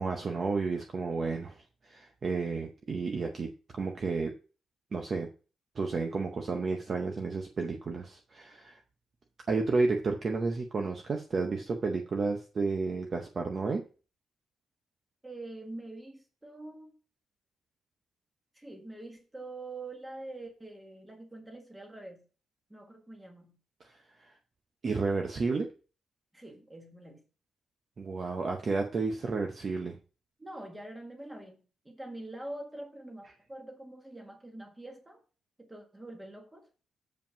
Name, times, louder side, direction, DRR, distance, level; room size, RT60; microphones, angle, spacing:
voice 1, 0.0-4.3 4.9-5.3 5.8-8.8 9.5-13.8 23.8-24.3 24.8-25.7 28.0-30.0, right 4 dB, 30° right, 3 dB, 0.7 m, -32 dB
voice 2, 15.2-16.9 18.6-22.2 22.7-23.6 26.3-27.2 30.4-35.2 35.6-36.6, right 2 dB, 10° right, 3 dB, 1.5 m, -45 dB
7.3 x 5.1 x 5.6 m, 0.37 s
wide cardioid pair, 180°, 0 cm